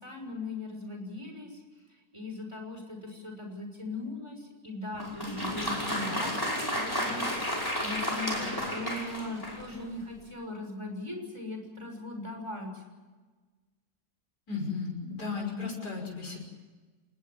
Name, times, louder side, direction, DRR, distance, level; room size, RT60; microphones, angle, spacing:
voice 1, 0.0-1.6 2.1-12.8, left 2 dB, 15° right, 3 dB, 6.3 m, -39 dB
Applause, 4.9-9.8, equal, 10° left, 5.6 m, -32 dB
voice 2, 14.5-16.5, left 4 dB, 65° left, 1 dB, 6.7 m, -35 dB
27.5 x 20.0 x 7.4 m, 1.3 s
omnidirectional pair, 1.8 m